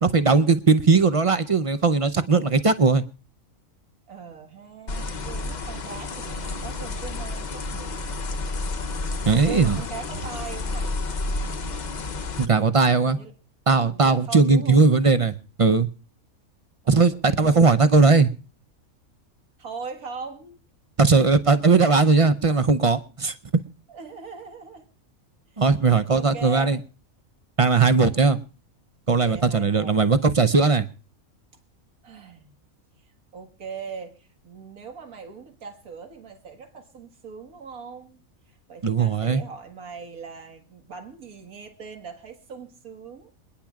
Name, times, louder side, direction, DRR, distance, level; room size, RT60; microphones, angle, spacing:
voice 1, 0.0-3.0 9.3-9.8 12.4-13.2 13.7-15.9 16.9-18.3 21.0-23.4 25.6-26.8 27.6-28.4 29.1-30.9 38.8-39.4, right 4 dB, 45° right, 0.4 m, -19 dB
voice 2, 4.1-8.0 9.4-11.0 13.1-13.3 13.8-14.8 16.8-17.8 19.6-20.6 23.9-24.9 25.5-25.6 26.1-26.8 27.7-28.4 29.1-30.0 32.0-32.5 33.3-38.2 38.5-43.3, right 5 dB, 85° right, 2.1 m, -40 dB
sound 1, 4.9-12.5, left 3 dB, 40° left, 0.7 m, -30 dB
27.5 x 10.0 x 2.4 m
omnidirectional pair, 1.5 m